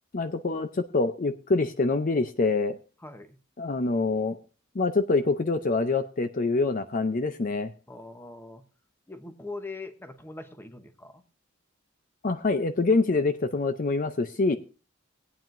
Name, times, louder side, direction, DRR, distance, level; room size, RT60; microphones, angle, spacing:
voice 1, 0.1-2.8 3.6-4.4 4.7-7.7 12.2-14.6, left 3 dB, 40° left, 10 dB, 0.5 m, -25 dB
voice 2, 3.0-3.4 7.9-8.6 9.1-11.2, left 2 dB, 10° left, 8 dB, 0.9 m, -41 dB
19.5 x 9.1 x 2.6 m, 0.34 s
head